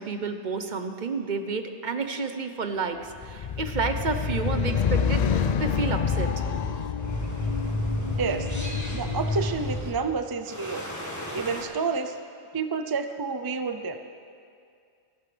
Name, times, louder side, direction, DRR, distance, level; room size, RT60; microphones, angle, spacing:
voice 1, 0.0-6.4, right 4 dB, 50° right, 7 dB, 0.9 m, -30 dB
sound 1, 3.2-9.7, left 6 dB, 50° left, 0.5 m, -28 dB
sound 2, 3.3-6.5 7.0-10.0 10.5-11.6, left 1 dB, 15° left, 1.5 m, -33 dB
voice 2, 8.9-10.8 11.3-12.1 12.5-14.0, right 5 dB, 35° right, 8 dB, 0.4 m, -29 dB
27.5 x 11.0 x 3.4 m, 2.3 s
omnidirectional pair, 1.1 m